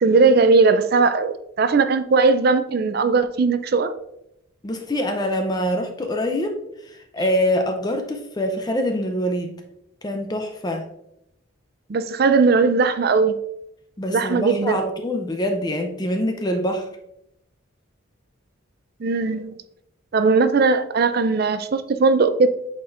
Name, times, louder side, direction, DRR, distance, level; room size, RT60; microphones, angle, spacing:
voice 1, 0.0-3.9 11.9-13.4 14.1-14.8 19.0-19.6 20.1-22.5, right 4 dB, 45° right, 0.4 m, -18 dB
voice 2, 4.6-6.6 6.9-9.5 10.0-10.9 14.0-16.9, equal, 20° left, 0.5 m, -24 dB
8.6 x 4.3 x 2.5 m
head